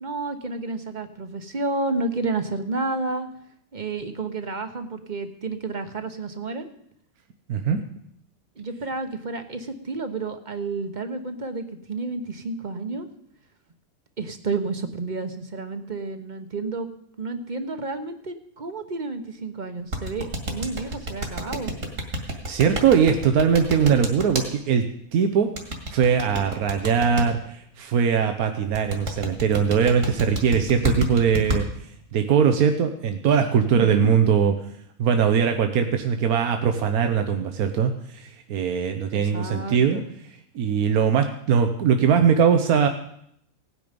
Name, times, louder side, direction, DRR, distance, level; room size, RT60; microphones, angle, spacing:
voice 1, 0.0-3.3 3.7-6.7 8.6-13.1 14.2-16.9 17.2-21.7 33.7-34.1 39.1-40.1, right 3 dB, 35° right, 8 dB, 1.1 m, -30 dB
voice 2, 7.5-7.8 22.5-25.5 25.9-31.6 32.1-34.5 35.0-40.0 40.5-42.9, right 7 dB, 85° right, 6 dB, 1.3 m, -21 dB
sound 1, 19.9-24.5 25.6-27.2 28.7-31.6, right 1 dB, 60° right, 2.5 m, -28 dB
17.0 x 9.8 x 5.2 m, 0.72 s
omnidirectional pair, 1.5 m